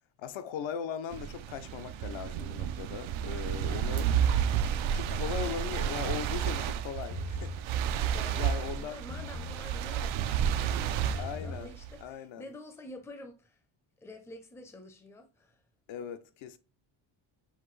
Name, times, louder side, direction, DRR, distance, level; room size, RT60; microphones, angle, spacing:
voice 1, 0.2-4.1 4.9-7.7 8.0-9.0 11.2-11.7 12.0-12.5 15.9-16.6, left 8 dB, 75° left, 0.6 m, -39 dB
sound 1, 1.1-12.0, right 9 dB, 80° right, 0.5 m, -31 dB
sound 2, 5.1-5.6 7.0-7.6 9.1-9.6 11.0-11.6, left 4 dB, 90° left, 2.4 m, -41 dB
voice 2, 8.1-13.6 14.0-15.6, left 2 dB, 5° left, 0.5 m, -48 dB
5.8 x 2.6 x 3.1 m
cardioid pair, 155°, 46 cm